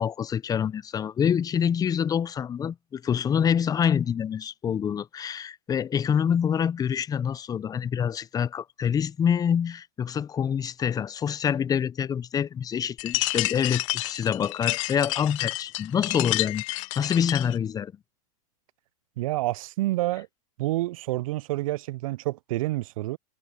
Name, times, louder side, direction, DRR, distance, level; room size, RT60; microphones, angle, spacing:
voice 1, 0.0-17.9, left 8 dB, 20° left, 0.8 m, -26 dB
sound 1, 13.0-17.6, left 21 dB, 55° left, 1.2 m, -30 dB
voice 2, 19.2-20.3 20.6-23.2, right 17 dB, 60° right, 0.4 m, -28 dB
hypercardioid pair, 110°, 20 cm